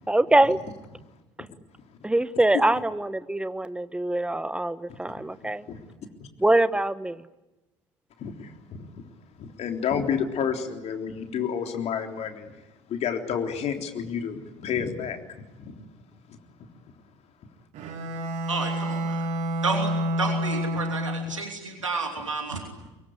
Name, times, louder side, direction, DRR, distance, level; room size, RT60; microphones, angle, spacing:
voice 1, 0.1-0.6 2.0-5.6 6.4-7.2, right 1 dB, 5° right, 14 dB, 1.1 m, -23 dB
voice 2, 4.9-5.9 6.2-6.3 8.2-9.1 9.4-15.8 16.3-16.7, left 7 dB, 45° left, 4 dB, 3.6 m, -31 dB
Bowed string instrument, 17.7-21.6, equal, 50° right, 3.4 m, -29 dB
voice 3, 18.5-19.3 19.6-19.9 20.2-22.6, right 3 dB, 85° right, 3 dB, 3.0 m, -30 dB
24.5 x 23.0 x 10.0 m, 1.0 s
figure-of-eight pair, 60°, 16 cm